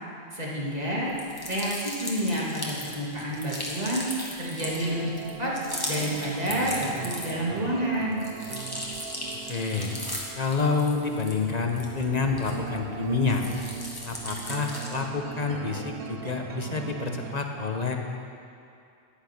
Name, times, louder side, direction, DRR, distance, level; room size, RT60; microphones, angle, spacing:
voice 1, 0.3-1.1 1.5-4.1 4.4-5.1 5.4-5.5 5.9-8.2, equal, 40° right, -5 dB, 2.7 m, -29 dB
sound 1, 1.1-7.6 7.9-12.8 13.2-15.1, left 1 dB, 20° left, 1.7 m, -37 dB
sound 2, 4.6-17.4, right 8 dB, 70° right, 0.9 m, -39 dB
voice 2, 9.5-9.9 10.3-13.4 14.0-18.0, left 4 dB, 40° left, 3 dB, 1.2 m, -28 dB
13.5 x 10.5 x 6.0 m, 2.6 s
omnidirectional pair, 1.1 m